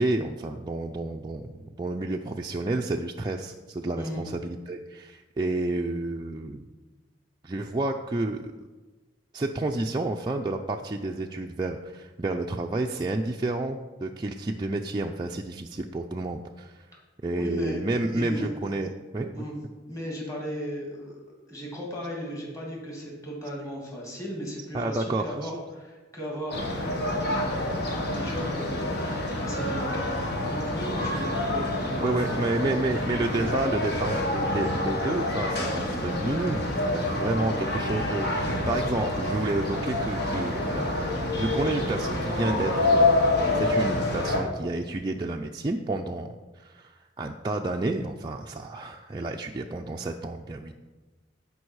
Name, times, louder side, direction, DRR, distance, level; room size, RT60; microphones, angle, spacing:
voice 1, 0.0-6.6 7.4-8.5 9.3-16.9 17.2-19.5 24.7-25.6 32.0-41.0 41.3-43.2 43.5-50.8, right 2 dB, 25° right, 1 dB, 0.4 m, -30 dB
voice 2, 17.4-17.8 18.1-18.5 19.3-19.6 19.9-21.2 21.5-28.9 29.4-32.2, equal, 20° left, -3 dB, 2.8 m, -36 dB
sound 1, 26.5-44.4, left 2 dB, 60° left, 1.8 m, -27 dB
16.0 x 5.4 x 4.7 m, 1.2 s
head